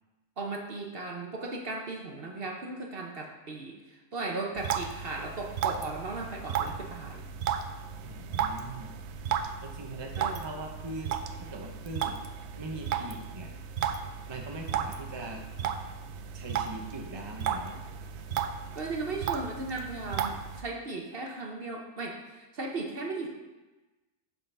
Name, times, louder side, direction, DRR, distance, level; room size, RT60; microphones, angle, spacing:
voice 1, 0.4-7.3 10.1-10.4 18.7-23.3, right 3 dB, 45° right, 1 dB, 1.0 m, -37 dB
sound 1, 4.6-20.6, right 8 dB, 75° right, 0.6 m, -35 dB
voice 2, 8.0-8.9 9.6-12.2 12.6-13.5 14.3-15.4 16.3-17.7, right 2 dB, 25° right, 1 dB, 0.6 m, -41 dB
6.3 x 5.7 x 5.4 m, 1.1 s
omnidirectional pair, 1.6 m